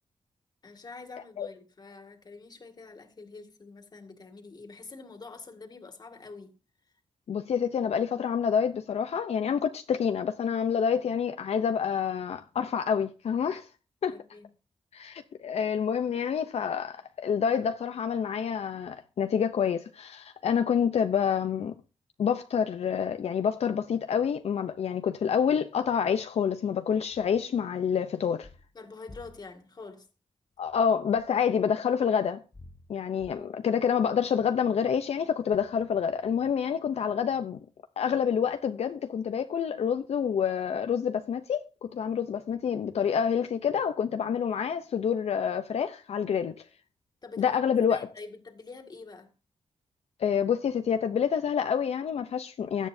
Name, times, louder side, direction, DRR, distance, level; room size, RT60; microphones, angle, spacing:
voice 1, 0.6-6.5 14.1-14.5 28.7-30.1 33.3-33.5 47.2-47.6 47.9-49.3, left 3 dB, 40° left, 2.1 m, -46 dB
voice 2, 7.3-13.7 14.0-14.2 14.9-21.7 22.2-28.5 30.6-32.4 32.9-37.6 38.0-46.6 47.4-48.1 50.2-52.9, left 7 dB, 75° left, 0.6 m, -27 dB
sound 1, 27.1-27.5 28.4-28.7 29.1-29.5 30.7-31.6 32.5-33.3, left 2 dB, 20° left, 0.9 m, -52 dB
16.5 x 11.0 x 2.7 m
wide cardioid pair, 135°, 11 cm